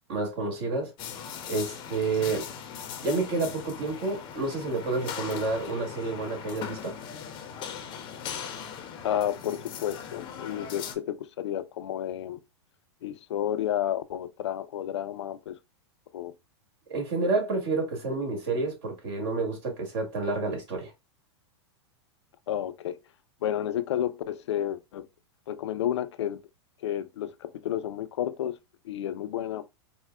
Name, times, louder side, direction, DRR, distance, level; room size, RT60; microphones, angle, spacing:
voice 1, 0.1-0.9 1.5-2.5 3.0-7.0 16.9-20.9, right 3 dB, 60° right, 1.8 m, -29 dB
sound 1, 1.0-10.9, left 8 dB, 35° left, 0.5 m, -39 dB
voice 2, 9.0-12.4 13.0-15.6 16.1-16.3 22.5-23.0 23.4-25.1 25.5-26.5 26.8-28.6 28.8-29.7, left 11 dB, 80° left, 0.4 m, -31 dB
4.2 x 2.1 x 2.3 m
hypercardioid pair, 120°, 14 cm